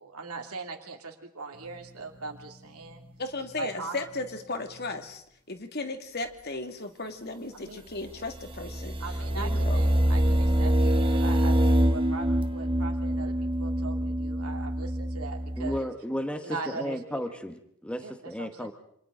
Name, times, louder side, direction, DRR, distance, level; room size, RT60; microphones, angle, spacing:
voice 1, 0.0-3.0 3.6-4.4 7.5-7.8 9.0-15.9 16.4-17.4 18.0-18.7, right 4 dB, 90° right, 3 dB, 2.6 m, -40 dB
sound 1, 1.6-1.9 2.1-2.5 2.8-3.1 3.4-3.7 4.0-4.3 4.7-4.9 8.1-15.8, right 1 dB, 25° right, 1.2 m, -26 dB
voice 2, 3.2-8.9 9.3-9.8, left 3 dB, 45° left, 6 dB, 2.1 m, -36 dB
voice 3, 15.6-18.7, equal, 5° left, 7 dB, 1.2 m, -34 dB
28.5 x 26.5 x 3.8 m, 0.70 s
head